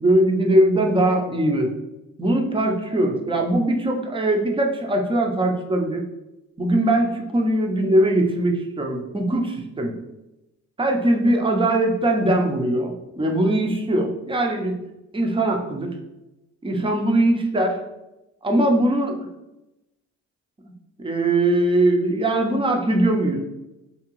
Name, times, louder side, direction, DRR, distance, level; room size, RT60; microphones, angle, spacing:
voice 1, 0.0-1.7 2.2-6.0 6.6-10.0 10.8-14.8 15.1-16.0 16.6-17.8 18.4-19.2 21.0-23.4, right 1 dB, 15° right, 2 dB, 0.6 m, -21 dB
3.6 x 2.9 x 3.0 m, 0.95 s
cardioid pair, 90°, 30 cm